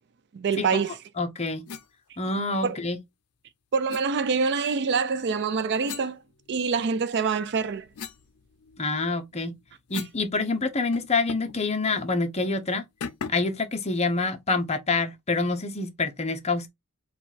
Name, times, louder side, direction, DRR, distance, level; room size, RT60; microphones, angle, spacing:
voice 1, 0.3-1.0 2.6-2.8 3.7-6.2 6.5-7.9, right 5 dB, 50° right, 0.4 m, -25 dB
voice 2, 1.2-1.6 2.2-3.0 8.8-9.5 9.9-12.8 13.3-16.7, left 3 dB, 30° left, 0.7 m, -27 dB
sound 1, 1.7-1.9 3.9-4.1 5.8-6.9 7.4-10.3 10.5-10.6 10.9-11.6 11.9-12.1 13.0-13.6, left 6 dB, 70° left, 0.5 m, -40 dB
4.4 x 2.4 x 4.0 m
head